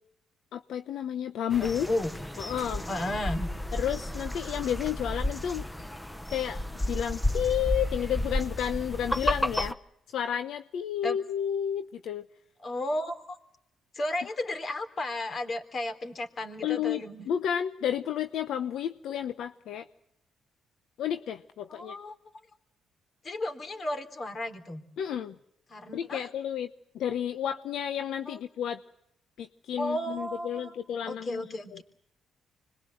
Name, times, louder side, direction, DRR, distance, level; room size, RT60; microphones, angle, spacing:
voice 1, 0.5-1.9 2.4-2.9 3.7-5.6 6.3-6.6 6.9-9.8 10.1-12.3 16.6-19.9 21.0-22.0 25.0-25.3 25.9-26.7 26.9-28.8 29.4-31.4 31.7-31.8, left 9 dB, 75° left, 9 dB, 0.9 m, -31 dB
sound 1, 1.5-9.7, left 1 dB, 5° left, 1.0 m, -32 dB
voice 2, 1.6-2.2 2.9-3.5 11.0-11.2 12.6-13.4 13.9-17.3 21.7-22.2 23.2-24.9 25.7-26.3 28.3-28.4 29.8-30.8 31.1-31.8, left 1 dB, 45° left, 7 dB, 3.5 m, -33 dB
25.5 x 21.5 x 7.8 m, 0.76 s
cardioid pair, 90°, 0 cm